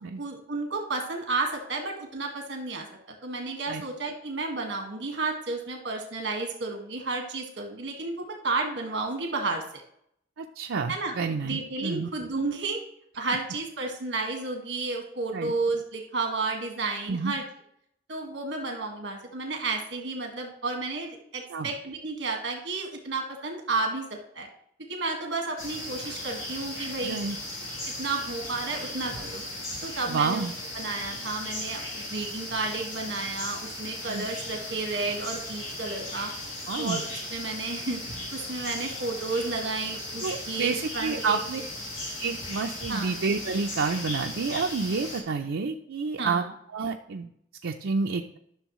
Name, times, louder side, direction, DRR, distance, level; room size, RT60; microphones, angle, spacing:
voice 1, 0.2-2.8 3.2-9.8 10.9-11.1 11.4-12.8 13.1-17.4 18.1-24.0 24.3-24.5 24.9-27.3 27.8-29.4 29.8-30.5 30.7-36.3 36.8-37.0 37.3-38.0 38.3-41.4 42.9-43.2 46.2-46.5, right 3 dB, 65° right, 2 dB, 1.7 m, -32 dB
voice 2, 10.4-12.1 15.3-15.5 17.1-17.4 21.5-21.7 27.0-27.4 30.1-30.5 34.1-34.3 36.7-37.0 40.2-41.6 42.2-46.4 46.7-47.3 47.6-48.4, right 4 dB, 85° right, 2 dB, 0.5 m, -29 dB
sound 1, 25.6-45.2, left 1 dB, 75° left, 2.6 m, -37 dB
11.5 x 6.2 x 3.1 m, 0.70 s
head